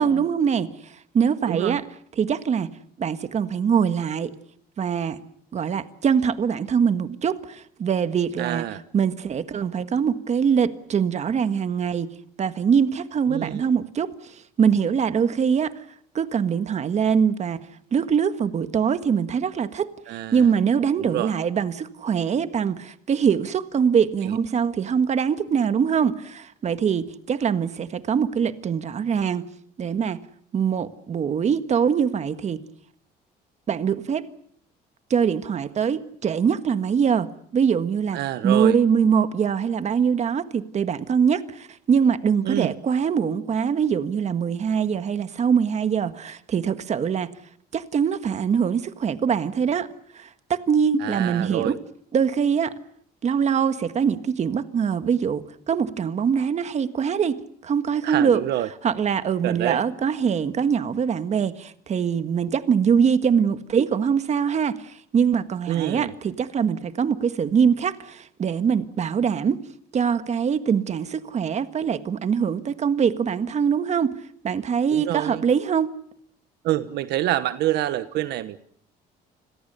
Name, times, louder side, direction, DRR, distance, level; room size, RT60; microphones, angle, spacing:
voice 1, 0.0-1.8 2.2-2.7 3.0-4.3 4.8-5.2 5.5-8.6 8.9-12.1 12.4-15.8 16.1-19.9 20.3-29.5 29.8-30.2 30.5-32.6 33.7-34.3 35.1-47.3 47.7-49.9 50.1-51.8 52.1-52.7 53.2-57.4 57.6-58.4 58.8-69.6 69.9-74.1 74.4-75.9, right 7 dB, 40° right, 11 dB, 1.6 m, -23 dB
voice 2, 1.5-1.8 8.4-8.8 13.3-13.7 20.1-20.5 21.0-21.3 24.2-24.4 38.1-38.7 42.4-42.7 51.0-51.8 58.0-58.7 59.4-59.8 65.7-66.1 74.9-75.4 76.6-78.6, right 13 dB, 80° right, 13 dB, 1.2 m, -27 dB
30.0 x 21.5 x 6.9 m, 0.67 s
cardioid pair, 110°, 17 cm